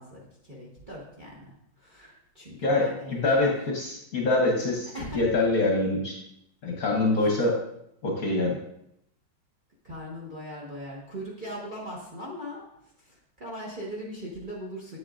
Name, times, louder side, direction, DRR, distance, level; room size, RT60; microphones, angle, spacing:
voice 1, 0.0-3.5 4.9-5.2 9.8-12.7 13.0-15.0, equal, 30° right, -3 dB, 1.1 m, -39 dB
voice 2, 2.6-6.2 6.6-7.6 8.0-8.6, left 2 dB, 55° left, -1 dB, 1.2 m, -25 dB
8.3 x 7.7 x 2.5 m, 0.77 s
omnidirectional pair, 2.3 m